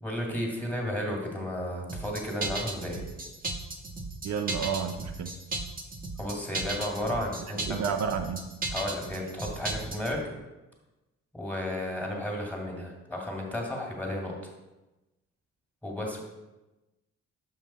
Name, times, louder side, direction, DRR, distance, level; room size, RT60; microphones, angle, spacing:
voice 1, 0.0-3.0 6.2-7.8 8.7-10.2 11.3-14.3 15.8-16.2, left 1 dB, 5° left, -1 dB, 2.0 m, -33 dB
sound 1, 1.9-10.2, right 3 dB, 30° right, 1.0 m, -35 dB
voice 2, 4.2-5.3 7.7-8.4, right 6 dB, 65° right, 5 dB, 0.6 m, -30 dB
6.6 x 5.5 x 4.2 m, 1.0 s
cardioid pair, 90°, 30 cm